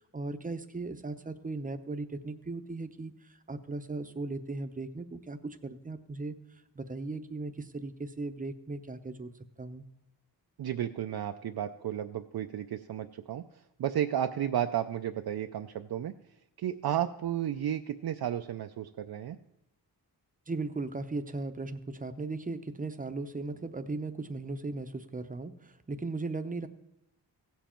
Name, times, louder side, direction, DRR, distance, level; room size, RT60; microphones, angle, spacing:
voice 1, 0.0-9.3 9.6-9.8 20.5-26.7, right 3 dB, 20° right, 9 dB, 0.7 m, -37 dB
voice 2, 10.6-16.1 16.6-19.4, right 10 dB, 65° right, 6 dB, 0.5 m, -33 dB
16.5 x 7.3 x 4.4 m, 0.89 s
wide cardioid pair, 120°, 41 cm